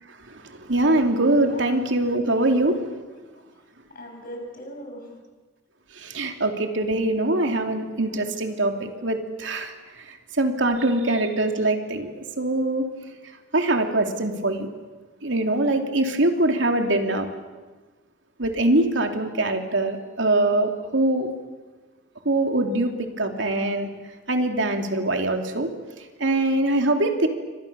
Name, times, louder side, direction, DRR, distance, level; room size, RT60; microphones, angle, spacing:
voice 1, 0.5-2.8 6.0-9.7 10.1-12.8 13.5-14.7 15.2-17.3 18.4-21.3 22.2-23.9 24.3-25.7 26.2-27.3, right 2 dB, 80° right, 4 dB, 2.9 m, -23 dB
voice 2, 3.9-5.1 8.0-8.5, equal, 50° left, 3 dB, 6.8 m, -40 dB
30.0 x 25.0 x 7.0 m, 1.3 s
head